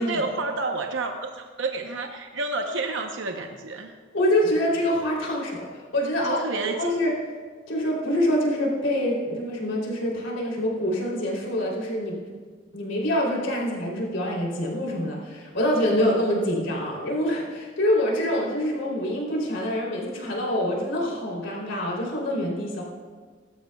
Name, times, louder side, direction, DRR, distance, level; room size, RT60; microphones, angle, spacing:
voice 1, 0.0-3.9 6.2-6.9, right 3 dB, 75° right, 3 dB, 0.8 m, -30 dB
voice 2, 4.1-6.4 6.7-7.1 7.7-12.1 12.7-22.8, left 1 dB, 75° left, -3 dB, 3.1 m, -25 dB
20.5 x 12.0 x 2.3 m, 1.5 s
head